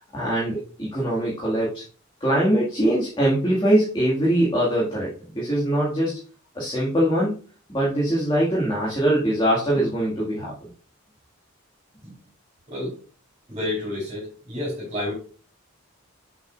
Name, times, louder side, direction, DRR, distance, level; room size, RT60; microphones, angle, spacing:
voice 1, 0.1-1.8 2.2-6.2 6.6-7.4 7.7-10.5, right 1 dB, 20° left, -6 dB, 1.9 m, -22 dB
voice 2, 13.5-15.1, left 1 dB, 30° right, -5 dB, 3.7 m, -30 dB
7.3 x 6.1 x 2.4 m, 0.38 s
head